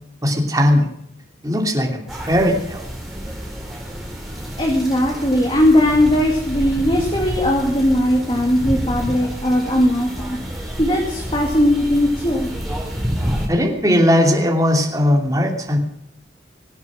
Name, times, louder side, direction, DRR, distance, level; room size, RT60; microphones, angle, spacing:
voice 1, 0.2-0.9 1.4-2.0 2.3-2.8 13.5-15.8, equal, 20° right, 1 dB, 3.0 m, -18 dB
sound 1, 2.1-13.5, equal, ahead, 4.0 m, -29 dB
voice 2, 4.6-10.4 10.8-12.5, left 1 dB, 30° left, 0 dB, 2.3 m, -18 dB
24.5 x 8.2 x 6.4 m, 0.74 s
head